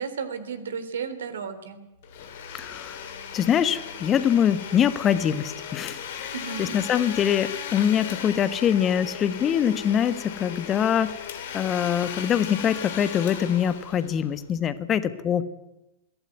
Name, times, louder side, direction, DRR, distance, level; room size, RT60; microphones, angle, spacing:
voice 1, 0.0-1.8 6.3-6.7, right 6 dB, 65° right, 11 dB, 3.2 m, -33 dB
Domestic sounds home sounds, 2.0-14.6, left 8 dB, 55° left, 3.6 m, -37 dB
voice 2, 2.6-3.0 3.3-6.3 6.6-11.1 11.5-15.4, left 9 dB, 25° left, 12 dB, 1.4 m, -24 dB
21.5 x 17.0 x 9.5 m, 0.92 s
figure-of-eight pair, 90°, 0 cm